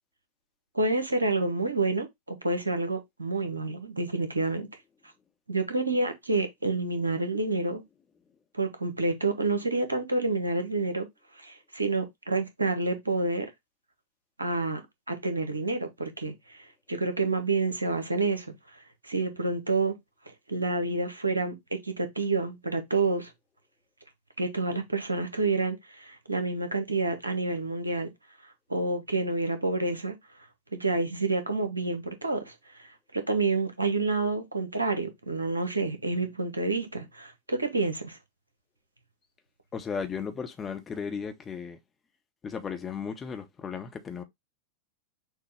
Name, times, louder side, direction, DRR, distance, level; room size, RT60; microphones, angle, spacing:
voice 1, 0.7-4.7 5.5-7.8 8.5-11.1 11.4-13.5 14.4-14.8 15.1-20.0 20.5-23.3 24.4-28.1 28.7-30.2 30.7-32.5 32.8-38.2, right 3 dB, 80° right, 0.9 m, -28 dB
voice 2, 39.7-41.8 42.4-44.2, left 6 dB, 20° left, 0.9 m, -35 dB
6.4 x 2.3 x 3.3 m
figure-of-eight pair, 90°, 0 cm